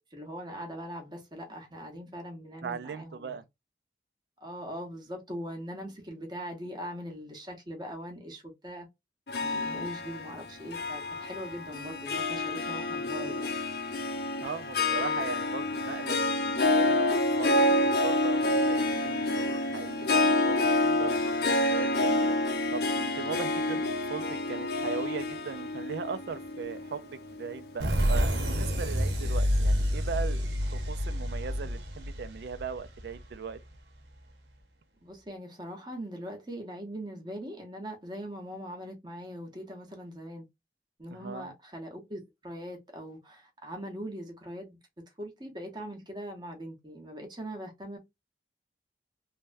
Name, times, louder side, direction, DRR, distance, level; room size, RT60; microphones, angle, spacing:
voice 1, 0.1-3.4 4.4-8.9 9.4-13.6 35.0-40.4 41.0-44.8 45.2-48.0, equal, 25° right, 0.9 m, -41 dB
voice 2, 2.6-3.4 14.4-22.4 22.7-33.6 41.1-41.5, right 5 dB, 65° right, 0.4 m, -39 dB
Harp, 9.3-27.7, left 2 dB, 60° left, 0.6 m, -28 dB
sound 1, 27.8-33.3, equal, 85° right, 1.0 m, -28 dB
3.3 x 2.2 x 2.5 m
head